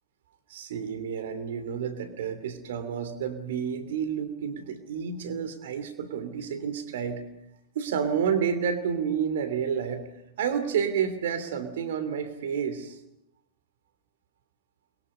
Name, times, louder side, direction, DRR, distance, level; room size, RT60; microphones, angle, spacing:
voice 1, 0.5-7.2 7.7-10.1 10.4-13.0, right 7 dB, 60° right, 9 dB, 2.9 m, -30 dB
30.0 x 22.5 x 5.4 m, 0.83 s
figure-of-eight pair, 90°, 0 cm